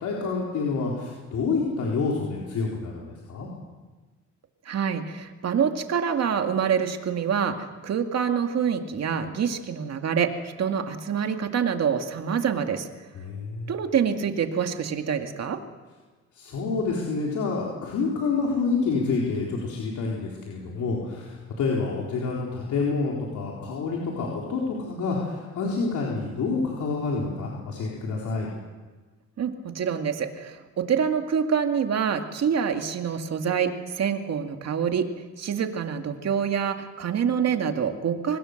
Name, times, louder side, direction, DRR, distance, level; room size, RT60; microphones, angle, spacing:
voice 1, 0.0-3.5 13.1-13.8 16.3-28.5, left 4 dB, 75° left, -2 dB, 4.1 m, -28 dB
voice 2, 4.7-12.9 13.7-15.6 29.4-35.1 35.4-38.4, right 7 dB, 60° right, 5 dB, 2.3 m, -26 dB
25.5 x 19.5 x 6.7 m, 1.3 s
cardioid pair, 90°, 30 cm